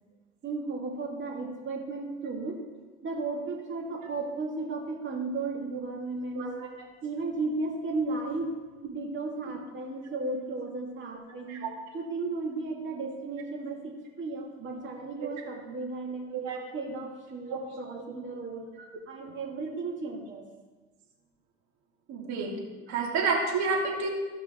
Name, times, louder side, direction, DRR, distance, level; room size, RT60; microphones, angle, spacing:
voice 1, 0.4-2.7 3.0-6.5 7.0-8.5 8.9-11.6 11.9-16.3 16.7-18.7 19.1-20.5 22.9-23.0, right 3 dB, 40° right, 0 dB, 2.5 m, -34 dB
voice 2, 6.3-6.7 11.5-11.7 16.3-16.6 17.5-17.6 17.9-18.0 18.8-18.9 22.1-22.5 22.9-24.1, right 4 dB, 65° right, -2 dB, 3.0 m, -30 dB
16.0 x 5.7 x 4.5 m, 1.3 s
supercardioid pair, 95°, 31 cm